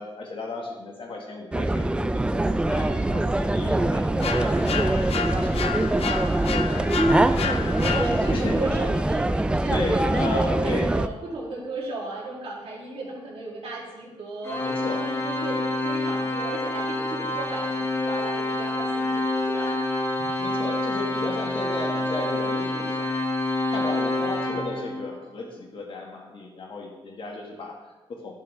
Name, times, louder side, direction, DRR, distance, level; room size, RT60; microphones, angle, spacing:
voice 1, 0.0-5.8 7.4-7.6 7.9-8.7 9.7-10.9 14.6-15.0 20.4-23.1 23.7-28.3, left 3 dB, 55° left, 0 dB, 1.6 m, -35 dB
sound 1, 1.5-11.1, right 1 dB, 10° right, 0.3 m, -23 dB
sound 2, 4.2-8.6, left 6 dB, 70° left, 0.6 m, -31 dB
voice 2, 6.7-19.8, right 2 dB, 70° right, -5 dB, 2.7 m, -35 dB
Organ, 14.4-25.2, left 2 dB, 20° left, 1.2 m, -27 dB
11.0 x 5.7 x 3.3 m, 1.1 s
cardioid pair, 105°, 10 cm